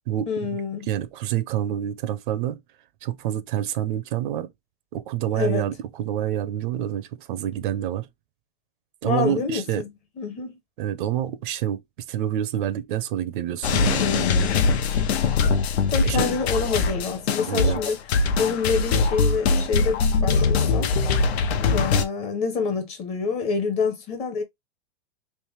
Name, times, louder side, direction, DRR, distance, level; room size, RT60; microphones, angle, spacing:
voice 1, 0.3-0.9 5.3-5.7 9.0-9.9 10.2-10.5 14.0-14.7 15.9-18.0 18.4-20.9 21.6-24.4, left 5 dB, 20° left, 0.6 m, -27 dB
voice 2, 0.9-2.6 3.0-4.5 4.9-8.1 9.0-9.8 10.8-11.8 12.1-14.0 16.1-16.4 17.4-17.8, right 11 dB, 55° right, 0.5 m, -27 dB
sound 1, 13.6-22.0, left 4 dB, 85° left, 0.8 m, -22 dB
3.3 x 2.9 x 3.1 m
supercardioid pair, 160°, 31 cm